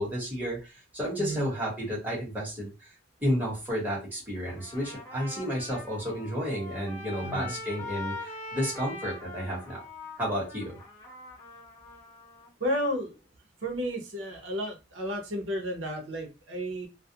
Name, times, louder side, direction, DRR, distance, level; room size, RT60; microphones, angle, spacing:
voice 1, 0.0-2.9 3.2-9.8 10.2-10.8, equal, 10° right, -6 dB, 1.1 m, -32 dB
voice 2, 1.2-1.5 7.2-7.6 12.6-13.2 13.6-16.9, equal, 90° right, 2 dB, 0.7 m, -32 dB
Trumpet, 4.5-12.5, left 2 dB, 15° left, 0.8 m, -42 dB
2.4 x 2.0 x 2.7 m, 0.28 s
head